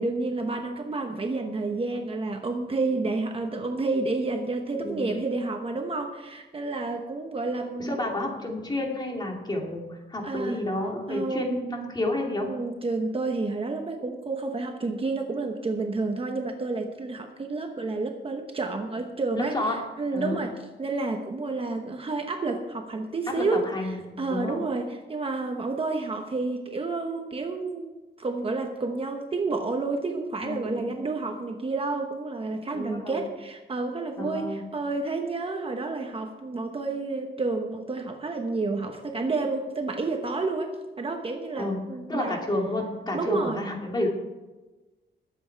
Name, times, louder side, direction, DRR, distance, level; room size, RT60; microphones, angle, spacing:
voice 1, 0.0-7.9 10.2-10.6 11.1-11.7 12.4-20.5 20.8-42.4 43.1-43.6, right 3 dB, 30° right, 3 dB, 1.0 m, -30 dB
voice 2, 4.7-5.2 7.8-12.5 19.4-19.8 20.1-20.4 23.3-24.6 30.4-30.8 32.7-33.3 34.2-34.6 41.6-41.8 42.1-44.1, left 1 dB, 20° left, 0 dB, 2.5 m, -30 dB
20.5 x 8.0 x 4.6 m, 1.2 s
wide cardioid pair, 160°, 19 cm